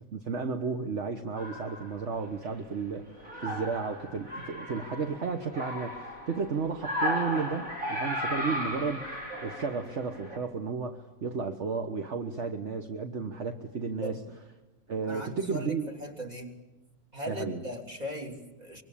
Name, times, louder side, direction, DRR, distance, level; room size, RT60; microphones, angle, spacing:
voice 1, 0.1-9.1 9.4-14.2 14.9-15.9 17.3-17.6, right 5 dB, 60° right, 5 dB, 1.6 m, -33 dB
sound 1, 1.4-2.7 3.1-10.4, equal, 80° right, 6.0 m, -35 dB
voice 2, 15.0-16.6 17.1-18.8, left 1 dB, 30° right, 1 dB, 3.5 m, -38 dB
25.5 x 23.5 x 8.6 m, 1.0 s
omnidirectional pair, 1.4 m